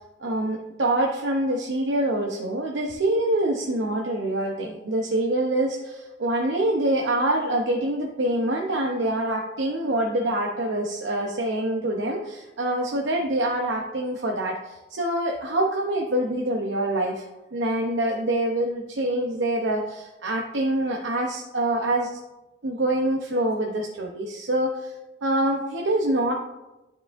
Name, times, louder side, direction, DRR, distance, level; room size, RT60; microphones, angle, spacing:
voice 1, 0.2-17.2 17.5-22.2 22.6-24.9 25.2-26.3, right 1 dB, 80° right, 0 dB, 0.8 m, -25 dB
12.0 x 4.8 x 2.5 m, 0.99 s
head